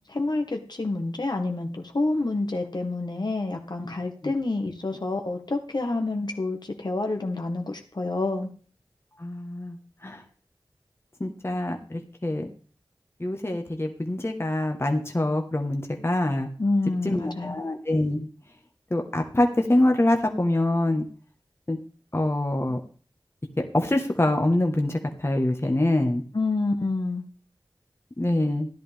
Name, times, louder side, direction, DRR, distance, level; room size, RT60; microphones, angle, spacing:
voice 1, 0.1-8.5 16.6-17.6 26.3-27.2, left 2 dB, 55° left, 4 dB, 1.6 m, -28 dB
voice 2, 9.2-9.8 10.0-10.2 11.2-12.4 13.2-16.5 17.0-18.3 18.9-21.1 21.7-21.8 22.1-22.8 23.7-26.2 28.2-28.7, left 1 dB, 30° left, 4 dB, 1.5 m, -25 dB
13.5 x 10.5 x 3.6 m, 0.40 s
wide cardioid pair, 55°, 9 cm